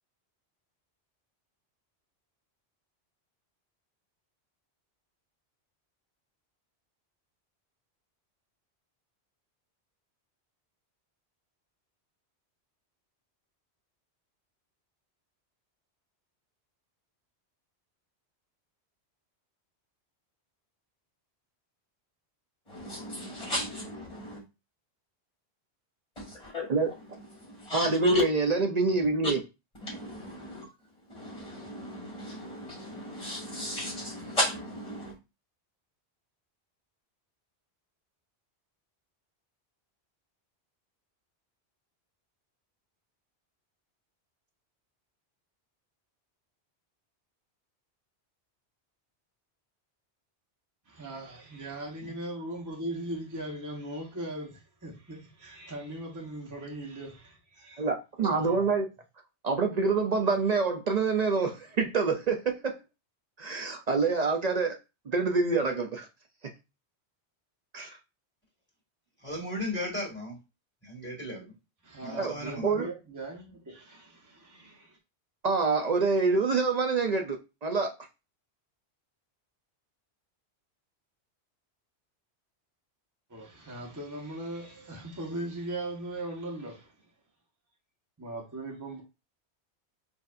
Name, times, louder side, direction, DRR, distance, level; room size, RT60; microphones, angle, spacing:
voice 1, 22.7-24.4 26.2-27.0 27.3-28.2 29.8-30.7 31.1-35.1, left 1 dB, 30° left, 2.0 m, -34 dB
voice 2, 27.7-29.4 57.8-58.9 59.4-62.8 63.4-64.8 65.1-66.1 67.7-68.0 72.2-72.3 72.6-72.9 75.4-77.9, right 4 dB, 45° right, 0.6 m, -26 dB
voice 3, 50.9-57.9 58.3-58.6 71.8-75.0 83.3-86.9 88.2-89.0, right 1 dB, 20° right, 1.0 m, -39 dB
voice 4, 69.2-70.4 70.8-71.5 72.0-72.9, left 1 dB, 10° left, 2.1 m, -36 dB
6.6 x 2.7 x 2.4 m
omnidirectional pair, 1.1 m